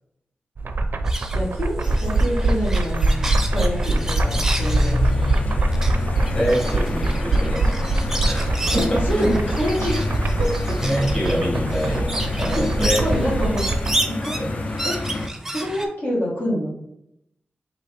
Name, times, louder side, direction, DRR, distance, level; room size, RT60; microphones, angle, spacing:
sound 1, 0.6-13.9, right 2 dB, 65° right, 0.4 m, -23 dB
sound 2, 1.1-15.9, right 1 dB, 10° right, 0.5 m, -32 dB
voice 1, 1.3-5.2 8.7-10.1 10.4-10.8 12.6-12.7 13.0-13.7 14.1-14.4 14.8-15.0 15.5-16.7, equal, 65° left, -6 dB, 1.5 m, -26 dB
sound 3, 1.8-15.3, left 2 dB, 45° left, 0.4 m, -28 dB
voice 2, 6.2-7.8 8.2-9.4 10.8-12.1 12.4-13.3 14.4-14.6, equal, 25° left, -5 dB, 1.6 m, -25 dB
5.3 x 2.8 x 3.3 m, 0.79 s
wide cardioid pair, 95°, 4 cm